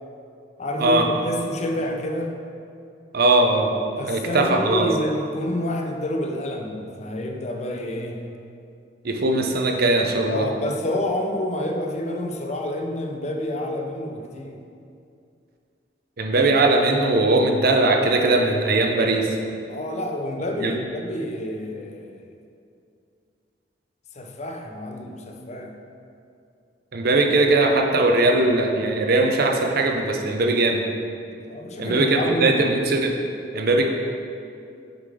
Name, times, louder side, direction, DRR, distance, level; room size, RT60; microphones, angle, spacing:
voice 1, 0.6-2.5 4.0-8.4 10.3-14.6 19.7-22.2 24.1-25.8 31.4-32.6, left 1 dB, 40° left, 3 dB, 0.5 m, -28 dB
voice 2, 3.1-3.7 4.1-4.8 9.0-10.5 16.2-19.4 20.6-20.7 26.9-30.8 31.8-33.2 33.5-33.9, right 2 dB, 55° right, 2 dB, 0.6 m, -20 dB
6.4 x 3.9 x 4.9 m, 2.5 s
head